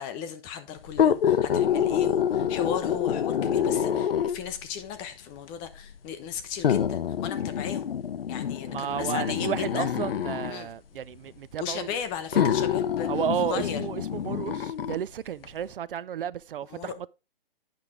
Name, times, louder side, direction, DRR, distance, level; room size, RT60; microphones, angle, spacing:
voice 1, 0.0-7.9 8.3-9.9 10.4-10.7 11.6-13.1 13.4-13.8 16.7-16.9, left 8 dB, 15° left, 0.5 m, -36 dB
sound 1, 0.9-4.6 5.5-5.6 6.6-10.6 11.6-11.7 12.3-15.0 15.4-15.5, left 9 dB, 75° left, 0.8 m, -26 dB
voice 2, 8.7-11.9 12.3-12.5 13.1-17.1, right 10 dB, 65° right, 0.5 m, -32 dB
8.8 x 5.9 x 3.6 m
hypercardioid pair, 145°, 29 cm